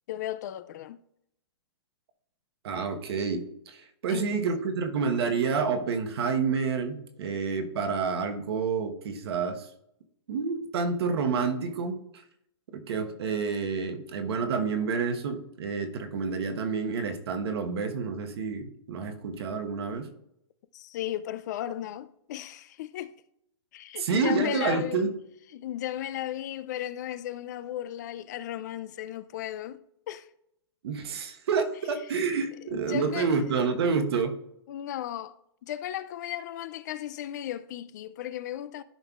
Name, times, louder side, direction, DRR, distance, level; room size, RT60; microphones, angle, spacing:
voice 1, 0.1-1.0 4.1-4.4 20.7-23.1 23.7-25.1 25.5-29.8 30.1-30.3 32.7-33.3 34.7-35.4 35.6-38.8, left 12 dB, 40° left, 0.3 m, -35 dB
voice 2, 2.6-9.7 10.3-12.0 12.7-20.1 24.0-25.1 30.8-34.4, right 5 dB, 65° right, 1.2 m, -29 dB
13.0 x 5.4 x 2.4 m
hypercardioid pair, 155°, 14 cm